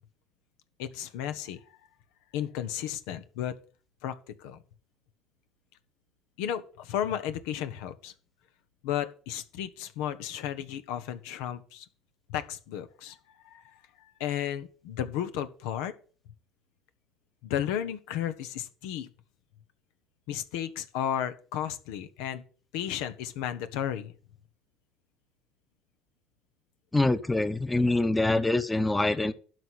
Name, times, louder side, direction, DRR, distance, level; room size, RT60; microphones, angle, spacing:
voice 1, 0.8-1.6 2.3-3.5 4.0-4.6 6.4-8.1 8.8-11.9 12.3-13.2 13.4-15.9 17.4-19.1 20.3-22.4 22.7-24.1, left 10 dB, 75° left, 10 dB, 1.0 m, -33 dB
voice 2, 26.9-29.3, left 2 dB, 15° left, 12 dB, 1.0 m, -25 dB
12.0 x 4.3 x 8.2 m, 0.40 s
hypercardioid pair, 75°, 0 cm